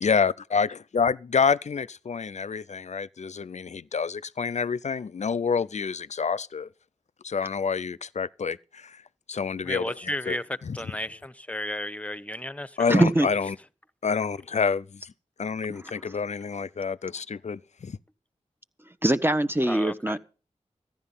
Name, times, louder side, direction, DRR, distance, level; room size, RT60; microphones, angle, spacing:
voice 1, 0.0-6.7 7.2-9.0 9.3-10.4 10.6-10.8 12.8-13.6 14.0-15.1 15.4-18.0, left 5 dB, 65° left, 0.5 m, -28 dB
voice 2, 9.6-12.8 19.6-20.2, left 1 dB, 10° left, 1.0 m, -33 dB
voice 3, 12.9-13.3 15.7-15.8 19.0-20.2, right 1 dB, 15° right, 1.0 m, -22 dB
14.5 x 10.5 x 5.6 m
cardioid pair, 40°, 13 cm